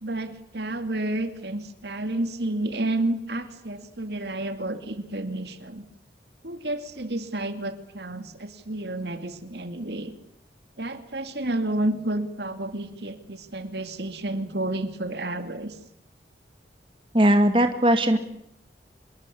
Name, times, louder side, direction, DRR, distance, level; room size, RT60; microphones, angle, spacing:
voice 1, 0.0-5.9 6.4-10.1 10.8-15.8, right 1 dB, 70° right, 9 dB, 2.5 m, -30 dB
voice 2, 17.1-18.2, right 1 dB, 30° right, 7 dB, 2.0 m, -19 dB
26.0 x 22.0 x 8.5 m, 0.71 s
head